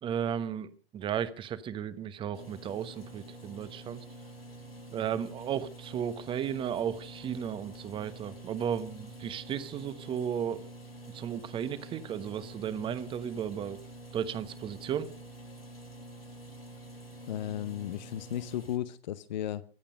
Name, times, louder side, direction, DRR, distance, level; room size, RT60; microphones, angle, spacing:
voice 1, 0.0-4.0 4.9-10.6 11.1-13.8 14.1-15.1, right 8 dB, 15° right, 15 dB, 1.1 m, -34 dB
sound 1, 2.3-18.8, right 2 dB, 90° left, 6.4 m, -47 dB
voice 2, 17.3-19.6, left 11 dB, 50° left, 15 dB, 0.8 m, -35 dB
24.0 x 8.8 x 5.3 m, 0.41 s
figure-of-eight pair, 110°, 29 cm